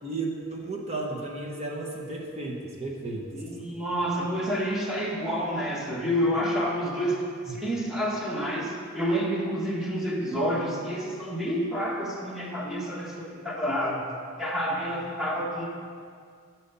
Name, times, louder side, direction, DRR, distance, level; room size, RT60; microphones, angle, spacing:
voice 1, 0.0-3.4 7.5-7.6, right 2 dB, 30° right, 0 dB, 1.0 m, -34 dB
voice 2, 3.3-14.1 14.4-15.7, equal, ahead, -3 dB, 1.3 m, -29 dB
10.5 x 5.8 x 5.5 m, 2.1 s
head